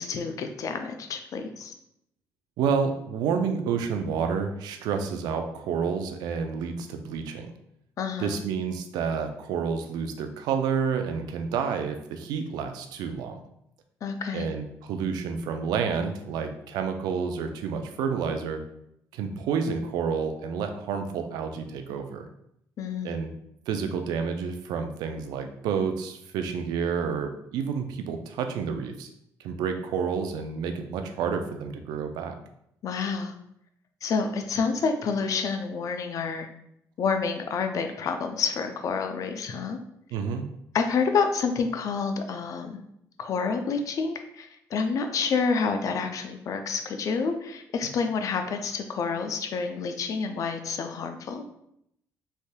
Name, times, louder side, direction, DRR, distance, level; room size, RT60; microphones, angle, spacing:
voice 1, 0.0-1.7 8.0-8.4 14.0-14.5 22.8-23.2 32.8-33.3 34.0-36.5 37.0-39.8 40.7-42.8 43.2-51.4, left 5 dB, 55° left, 6 dB, 0.4 m, -28 dB
voice 2, 2.6-7.5 8.2-13.4 14.3-18.6 19.1-22.3 23.0-23.3 23.7-29.1 29.4-32.3 40.1-40.5, right 6 dB, 80° right, 6 dB, 0.4 m, -29 dB
3.2 x 2.6 x 2.2 m, 0.75 s
supercardioid pair, 75°, 7 cm